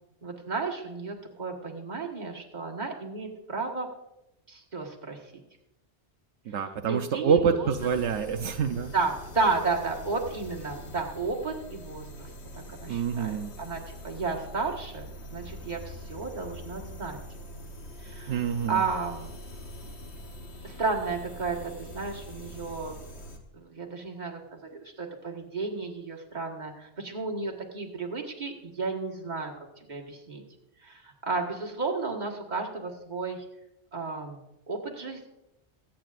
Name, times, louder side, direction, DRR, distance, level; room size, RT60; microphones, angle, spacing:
voice 1, 0.2-3.9 4.5-5.3 6.9-7.7 8.9-12.3 12.5-17.2 18.0-19.3 20.6-22.9 23.5-29.5 29.8-30.4 30.8-33.4 33.9-34.4 34.7-35.3, right 4 dB, 40° right, 1 dB, 1.7 m, -33 dB
voice 2, 6.5-8.9 12.9-13.5 18.3-18.9, right 6 dB, 85° right, 6 dB, 1.0 m, -27 dB
sound 1, 7.7-23.4, equal, 70° left, 1.5 m, -43 dB
23.0 x 8.7 x 2.5 m, 0.92 s
omnidirectional pair, 1.2 m